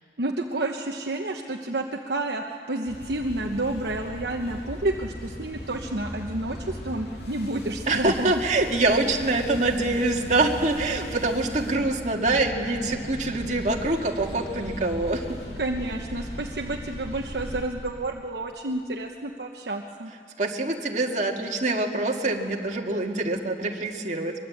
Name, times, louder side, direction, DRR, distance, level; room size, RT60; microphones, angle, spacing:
voice 1, 0.2-8.3 15.6-20.1, right 2 dB, 65° right, 2 dB, 1.1 m, -30 dB
sound 1, 2.9-17.6, equal, 65° left, 3.2 m, -38 dB
voice 2, 7.9-15.4 20.4-24.3, right 2 dB, 45° right, 1 dB, 2.1 m, -25 dB
23.0 x 22.0 x 8.5 m, 2.3 s
head